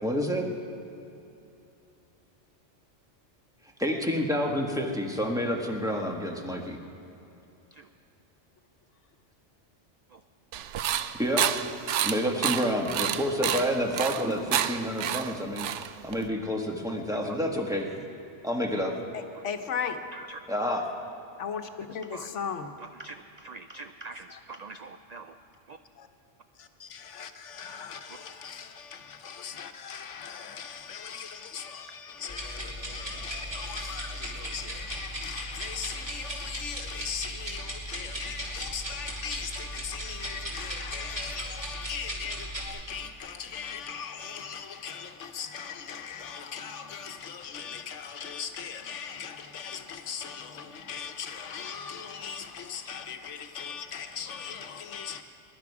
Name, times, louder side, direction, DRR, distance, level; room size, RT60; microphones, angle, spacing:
voice 1, 0.0-0.5 3.8-6.8 11.2-11.5 12.0-15.7 16.0-18.0 18.4-18.9 20.5-20.9, equal, 5° right, 1 dB, 1.4 m, -29 dB
sound 1, 10.5-16.3, right 10 dB, 80° right, 0.9 m, -30 dB
voice 2, 19.1-20.0 21.4-22.7 24.3-24.4 26.0-26.1 26.6-55.2, left 6 dB, 80° left, 7 dB, 1.2 m, -39 dB
voice 3, 22.8-25.4 25.7-25.8, right 3 dB, 60° right, 8 dB, 0.4 m, -44 dB
sound 2, 32.3-42.7, equal, 30° right, 2.9 m, -37 dB
21.0 x 11.5 x 4.8 m, 2.8 s
omnidirectional pair, 1.2 m